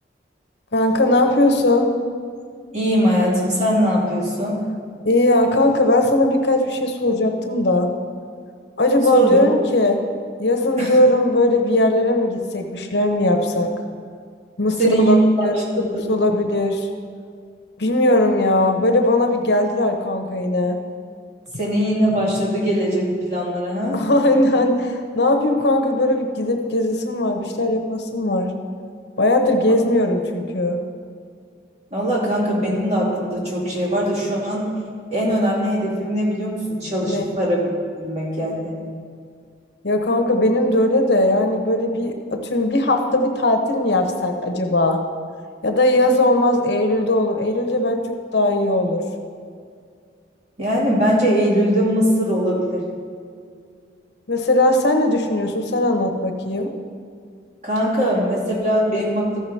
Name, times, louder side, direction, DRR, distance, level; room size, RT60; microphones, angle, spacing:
voice 1, 0.7-1.9 5.0-7.9 8.8-10.0 10.4-13.7 14.6-15.2 15.4-16.9 17.8-20.8 23.9-28.5 29.2-30.8 37.0-37.2 39.8-45.0 45.6-49.0 54.3-56.7, left 1 dB, 70° left, 4 dB, 0.9 m, -19 dB
voice 2, 2.7-4.6 9.1-9.4 10.8-11.0 14.8-16.0 21.6-24.0 31.9-34.7 35.1-37.6 38.0-38.7 50.6-52.8 57.6-59.4, right 1 dB, 40° right, -5 dB, 2.7 m, -21 dB
14.0 x 4.8 x 5.7 m, 2.2 s
head